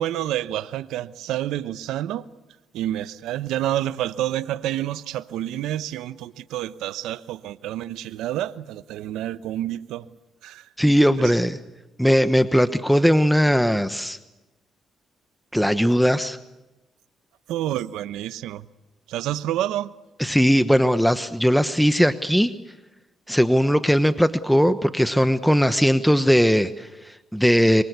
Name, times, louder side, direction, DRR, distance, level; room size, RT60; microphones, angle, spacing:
voice 1, 0.0-2.2 2.7-10.1 10.4-10.7 17.5-18.6 19.1-19.9, right 13 dB, 90° right, 1.0 m, -28 dB
voice 2, 10.8-11.6 12.0-14.2 15.5-16.4 20.2-22.5 23.3-27.8, equal, ahead, 1.1 m, -19 dB
26.5 x 23.5 x 8.2 m
cardioid pair, 90°, 0 cm